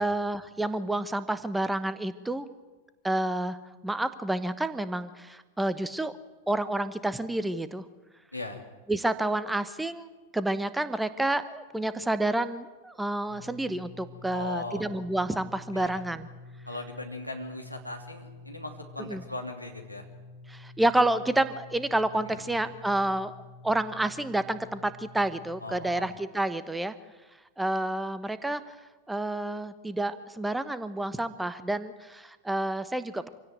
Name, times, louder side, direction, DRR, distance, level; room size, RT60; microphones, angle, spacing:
voice 1, 0.0-2.5 3.0-3.6 3.8-6.1 6.5-7.8 8.9-10.1 10.3-16.3 19.1-19.2 20.5-26.9 27.6-28.6 29.1-33.3, right 1 dB, 5° right, 13 dB, 1.2 m, -29 dB
voice 2, 8.3-8.6 14.3-14.8 15.7-16.0 16.7-20.1 22.3-22.4 25.6-26.1, left 2 dB, 85° left, 3 dB, 3.0 m, -38 dB
sound 1, 13.3-26.1, left 2 dB, 90° right, 2.5 m, -49 dB
26.0 x 17.0 x 9.4 m, 1.2 s
figure-of-eight pair, 90°, 0 cm